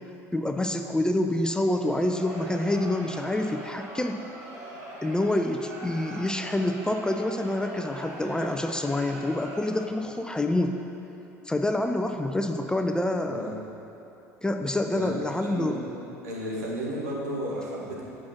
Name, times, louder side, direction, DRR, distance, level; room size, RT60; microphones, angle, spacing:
voice 1, 0.3-4.2 5.0-10.8 11.5-13.6 14.4-15.8, left 1 dB, 10° left, 5 dB, 0.5 m, -27 dB
Crowd, 1.6-10.1, right 1 dB, 45° right, 1.8 m, -42 dB
voice 2, 15.4-15.8 16.2-18.0, equal, 75° right, -4 dB, 1.8 m, -33 dB
8.5 x 6.0 x 5.8 m, 3.0 s
figure-of-eight pair, 65°, 9 cm